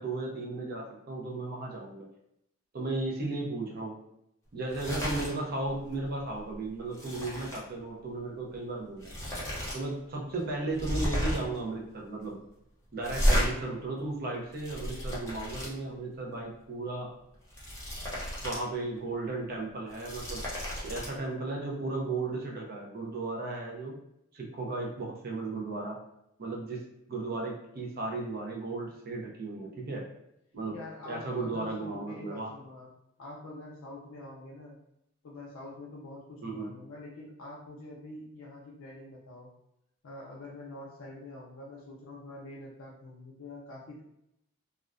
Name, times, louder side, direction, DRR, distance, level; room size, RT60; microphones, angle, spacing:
voice 1, 0.0-2.1 2.7-4.0 4.5-9.1 9.7-12.4 12.9-17.1 18.4-20.4 20.8-24.0 24.3-26.0 26.4-26.8 27.1-30.0 30.5-30.8 31.1-32.5 36.4-36.7, right 2 dB, 50° right, -1 dB, 0.5 m, -35 dB
sound 1, 4.6-5.3 5.7-5.9 6.3-7.6 8.5-8.6 9.0-9.8 10.1-10.2 10.7-11.6 13.0-13.5 14.3-15.7 17.3-18.6 19.0-19.1 19.8-21.1, equal, 15° left, 0.7 m, -32 dB
voice 2, 30.7-32.9 33.2-34.8 35.2-39.5 40.0-44.0, left 2 dB, 75° left, -4 dB, 0.4 m, -45 dB
2.4 x 2.1 x 2.4 m, 0.80 s
head